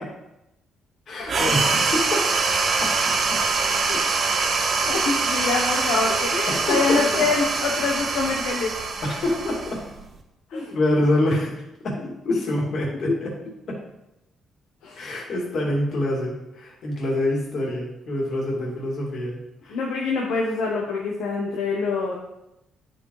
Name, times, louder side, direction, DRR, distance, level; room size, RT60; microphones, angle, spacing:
voice 1, 1.1-2.0 2.8-2.9 6.5-7.2 7.9-8.0 9.0-9.8 10.5-11.5 11.8-12.0 12.2-13.3 13.7-13.8 14.9-19.8, left 1 dB, 60° left, -3 dB, 2.9 m, -26 dB
sound 1, 1.3-10.2, right 4 dB, 55° right, 1.6 m, -24 dB
voice 2, 4.9-8.8 10.5-10.7 12.3-12.4 13.1-13.2 14.8-15.1 19.7-22.2, left 4 dB, 85° left, -2 dB, 1.3 m, -25 dB
9.9 x 5.3 x 5.0 m, 0.90 s
cardioid pair, 90°, 0 cm